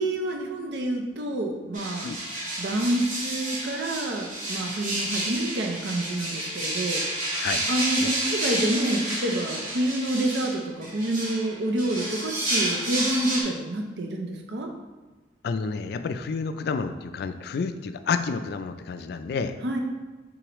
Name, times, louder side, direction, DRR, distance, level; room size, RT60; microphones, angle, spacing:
voice 1, 0.0-2.1 2.6-7.0 7.7-14.7 19.6-19.8, right 1 dB, 70° right, 2 dB, 0.6 m, -28 dB
sound 1, 1.7-13.4, right 1 dB, 45° right, 1.2 m, -30 dB
voice 2, 7.3-7.6 8.0-8.1 15.4-19.5, left 5 dB, 60° left, 9 dB, 0.3 m, -30 dB
4.7 x 3.8 x 3.0 m, 1.2 s
head